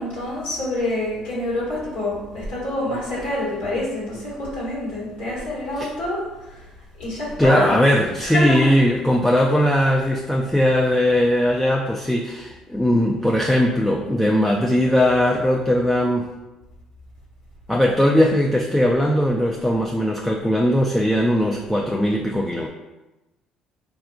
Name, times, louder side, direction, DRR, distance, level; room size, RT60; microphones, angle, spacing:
voice 1, 0.0-6.7 7.0-7.9 8.2-8.7, left 1 dB, 80° left, -7 dB, 1.2 m, -27 dB
voice 2, 7.4-16.3 17.7-22.7, equal, 5° left, -1 dB, 0.3 m, -19 dB
3.5 x 2.4 x 2.3 m, 1.0 s
hypercardioid pair, 60°, 2 cm